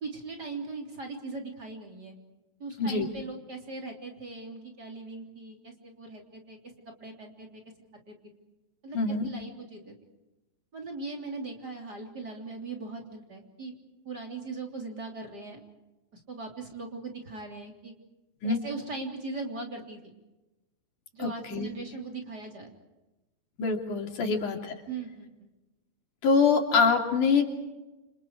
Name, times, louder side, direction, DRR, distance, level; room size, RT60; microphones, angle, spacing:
voice 1, 0.0-2.2 2.6-6.6 6.9-7.6 8.1-8.2 8.8-9.0 9.2-10.0 10.7-13.7 14.1-15.6 16.1-17.9 18.4-20.1 21.1-22.7 24.2-24.4 24.9-25.3, right 3 dB, 30° right, 2 dB, 3.8 m, -39 dB
voice 2, 8.9-9.3 18.4-18.6 21.2-21.7 23.6-24.6 26.2-27.4, left 5 dB, 70° left, 2 dB, 4.4 m, -24 dB
29.5 x 27.5 x 4.8 m, 1.0 s
omnidirectional pair, 3.6 m